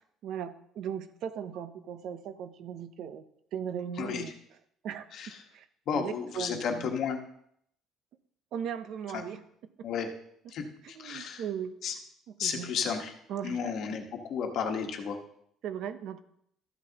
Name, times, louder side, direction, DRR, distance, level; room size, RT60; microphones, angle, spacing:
voice 1, 0.2-3.2 3.5-4.3 4.8-5.1 5.5-5.7 5.9-6.9 8.5-9.4 10.8-11.8 12.4-12.8 13.3-13.7 15.6-16.2, right 8 dB, 55° right, 11 dB, 0.6 m, -37 dB
voice 2, 5.9-7.2 9.8-10.1 10.5-11.4 11.8-11.9 12.4-13.1 13.4-15.2, left 6 dB, 50° left, 4 dB, 1.3 m, -33 dB
13.0 x 10.0 x 2.9 m, 0.70 s
cardioid pair, 165°, 0 cm